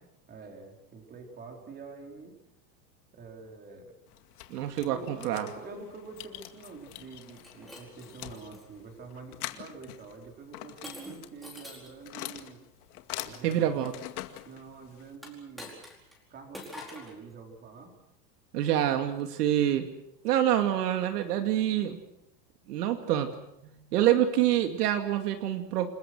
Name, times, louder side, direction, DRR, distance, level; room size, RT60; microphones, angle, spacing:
voice 1, 0.3-2.3 3.1-3.9 4.8-12.6 13.2-13.9 14.4-15.7 16.3-17.9, right 4 dB, 20° right, 2 dB, 4.7 m, -46 dB
sound 1, 4.1-15.1, left 14 dB, 65° left, 2.3 m, -44 dB
voice 2, 4.5-5.5 13.4-13.9 18.5-19.9 20.2-22.0 22.7-23.3 23.6-25.9, right 11 dB, 70° right, 6 dB, 2.5 m, -26 dB
Shatter, 7.3-8.7 9.3-9.6 10.8-12.0 15.1-16.2 16.5-17.2, left 2 dB, ahead, 4.6 m, -46 dB
29.0 x 21.0 x 6.3 m, 0.82 s
supercardioid pair, 160°, 48 cm